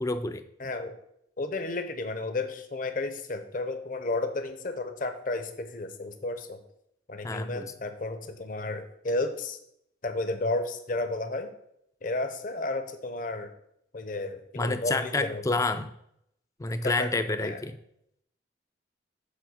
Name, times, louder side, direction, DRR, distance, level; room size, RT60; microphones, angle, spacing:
voice 1, 0.0-0.4 7.2-7.7 14.6-15.9 16.6-17.8, left 2 dB, 15° left, 10 dB, 0.4 m, -29 dB
voice 2, 0.6-0.9 1.4-6.6 7.1-9.6 10.0-11.5 12.0-13.5 13.9-15.6 16.8-17.1 17.4-17.6, left 2 dB, 45° left, 8 dB, 0.7 m, -32 dB
7.4 x 3.6 x 6.3 m, 0.75 s
head